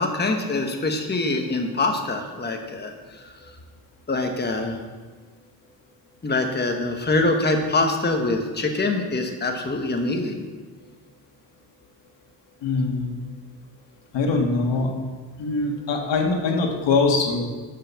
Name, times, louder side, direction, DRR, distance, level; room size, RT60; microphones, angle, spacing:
voice 1, 0.0-3.3 4.1-4.8 6.2-10.4, left 2 dB, 25° left, 3 dB, 1.4 m, -24 dB
voice 2, 12.6-13.2 14.1-14.9 15.4-17.4, left 3 dB, 80° left, 2 dB, 1.8 m, -22 dB
12.0 x 5.9 x 7.1 m, 1.4 s
cardioid pair, 90°, 43 cm